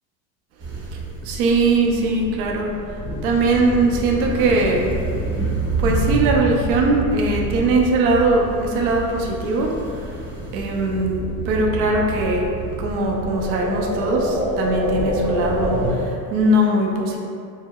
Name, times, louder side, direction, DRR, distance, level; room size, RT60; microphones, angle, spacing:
sound 1, 0.6-15.9, right 1 dB, 25° right, 0.9 m, -27 dB
voice 1, 1.2-2.7 3.2-4.9 5.8-9.8 10.5-17.2, right 2 dB, 80° right, 0 dB, 0.6 m, -20 dB
4.6 x 2.0 x 2.3 m, 2.4 s
supercardioid pair, 140°, 42 cm